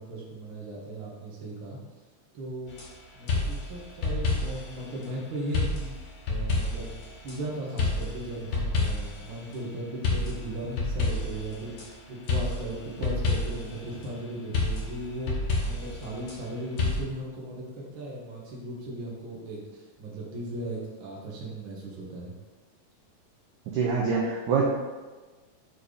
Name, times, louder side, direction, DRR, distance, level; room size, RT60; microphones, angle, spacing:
voice 1, 0.0-1.8 2.3-2.8 3.1-11.7 12.1-15.3 15.6-22.3, right 1 dB, 50° right, -4 dB, 1.7 m, -37 dB
sound 1, 2.7-2.9 3.3-4.7 5.5-7.4 7.8-9.3 10.0-11.9 12.3-13.8 14.5-16.4 16.8-17.0, left 3 dB, 75° left, 1.1 m, -29 dB
voice 2, 23.7-24.6, right 5 dB, 75° right, -3 dB, 1.9 m, -25 dB
5.7 x 4.4 x 5.0 m, 1.3 s
omnidirectional pair, 4.0 m